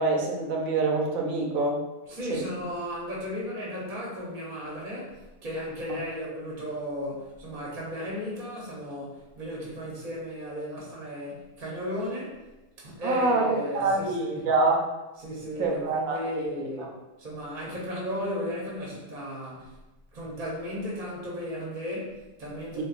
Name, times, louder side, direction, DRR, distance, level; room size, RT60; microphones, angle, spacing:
voice 1, 0.0-1.8 2.3-2.4 13.0-14.9 15.6-16.9 22.8-22.9, right 3 dB, 75° right, 0 dB, 1.0 m, -26 dB
voice 2, 2.1-12.4 12.8-14.5 15.2-19.7 20.1-22.8, equal, 35° right, -5 dB, 0.8 m, -35 dB
4.0 x 2.3 x 2.4 m, 1.0 s
omnidirectional pair, 1.4 m